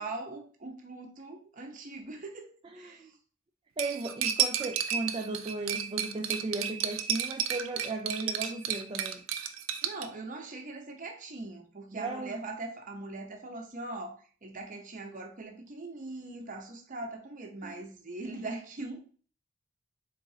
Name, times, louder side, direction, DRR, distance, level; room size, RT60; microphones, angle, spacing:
voice 1, 0.0-3.2 9.8-19.1, right 2 dB, 40° right, 0.8 m, -41 dB
voice 2, 2.6-3.1 3.8-9.2 11.9-12.4 17.6-17.8, right 2 dB, 25° right, 0.3 m, -36 dB
Cutlery silverware, 3.8-10.1, right 9 dB, 90° right, 0.4 m, -32 dB
4.0 x 3.7 x 2.8 m
head